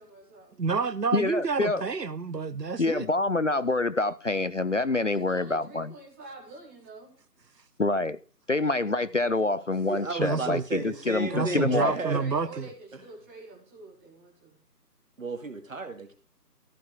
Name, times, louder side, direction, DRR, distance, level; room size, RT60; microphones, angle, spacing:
voice 1, 0.0-0.6 5.1-7.1 11.2-14.6, right 2 dB, 10° right, 1.9 m, -45 dB
voice 2, 0.6-3.1 10.2-10.6 11.3-12.7, right 5 dB, 80° right, 1.0 m, -29 dB
voice 3, 1.1-1.8 2.8-5.9 7.8-8.2 8.5-11.9, left 2 dB, 50° left, 0.5 m, -26 dB
voice 4, 9.8-12.2 12.9-13.0 15.2-16.1, right 3 dB, 55° right, 2.2 m, -33 dB
14.5 x 5.6 x 5.2 m
figure-of-eight pair, 160°, 48 cm